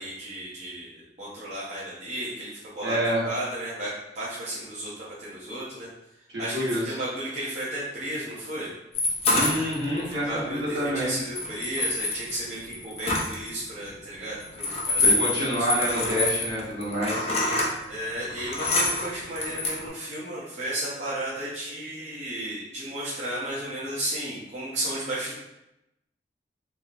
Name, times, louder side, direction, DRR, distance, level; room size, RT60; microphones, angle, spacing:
voice 1, 0.0-3.0 3.2-3.9 4.1-5.9 6.4-8.7 9.9-15.5 15.9-16.1 17.9-25.4, right 1 dB, 40° right, -9 dB, 0.6 m, -34 dB
voice 2, 2.8-3.3 6.3-7.0 9.3-11.2 15.0-17.3, equal, 75° right, -7 dB, 1.2 m, -27 dB
sound 1, 9.0-10.1 11.4-13.5 14.4-17.7 18.3-19.9, left 2 dB, 35° left, 0.5 m, -26 dB
3.0 x 2.7 x 2.4 m, 0.89 s
head